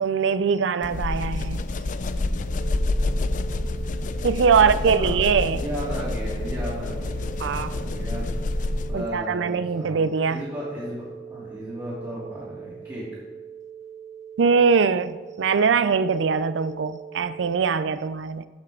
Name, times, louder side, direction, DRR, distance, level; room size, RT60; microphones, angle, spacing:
voice 1, 0.0-1.6 4.2-5.6 7.4-7.7 8.9-10.4 14.4-18.5, right 5 dB, 75° right, 14 dB, 0.4 m, -22 dB
sound 1, 0.8-9.1, left 2 dB, 45° left, 0.4 m, -28 dB
sound 2, 2.5-17.5, right 8 dB, 10° left, 0.8 m, -42 dB
voice 2, 4.6-5.2 5.5-8.3 8.8-10.0 10.3-13.1, equal, 20° right, -11 dB, 3.1 m, -35 dB
14.5 x 6.5 x 3.7 m, 1.3 s
head